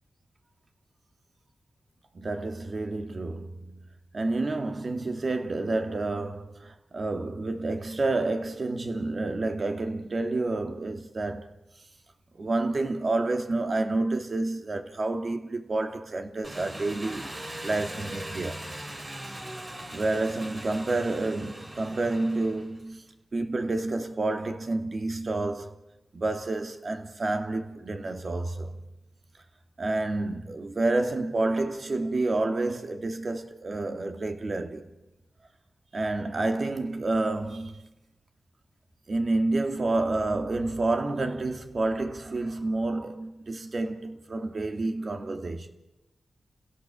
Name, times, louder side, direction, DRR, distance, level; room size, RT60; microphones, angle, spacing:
voice 1, 2.1-3.9 4.1-11.5 12.3-17.3 17.6-18.6 19.7-23.0 23.3-25.7 26.1-28.8 29.8-34.9 35.9-37.9 39.1-45.7, right 2 dB, 50° right, 2.3 m, -29 dB
Engine, 16.4-22.9, right 1 dB, 30° right, 4.3 m, -40 dB
30.0 x 16.5 x 7.5 m
cardioid pair, 75°, 0 cm